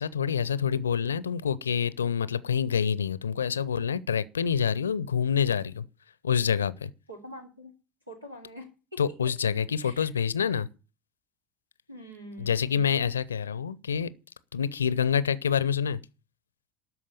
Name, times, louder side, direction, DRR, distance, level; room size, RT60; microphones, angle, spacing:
voice 1, 0.0-5.8 6.2-6.9 9.0-10.7 12.4-14.1 14.5-16.0, left 7 dB, 75° left, 0.6 m, -27 dB
voice 2, 7.1-7.7 8.1-9.0 9.8-10.1 11.9-13.0, equal, 90° right, 2.9 m, -45 dB
13.0 x 4.7 x 8.6 m
figure-of-eight pair, 70°, 0 cm